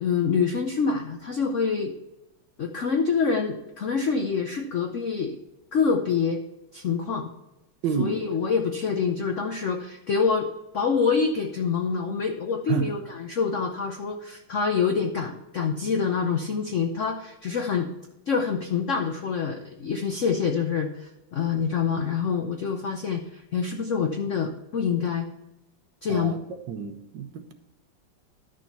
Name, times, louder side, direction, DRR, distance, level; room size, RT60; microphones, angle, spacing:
voice 1, 0.0-1.9 2.6-5.4 5.7-6.4 6.7-7.3 8.0-10.5 10.7-17.9 18.3-25.3 26.0-26.4, left 5 dB, 65° left, 0.7 m, -26 dB
voice 2, 7.8-8.2 12.7-12.9 26.1-26.4 26.7-27.5, right 7 dB, 65° right, 1.4 m, -29 dB
11.0 x 6.6 x 4.1 m
omnidirectional pair, 2.2 m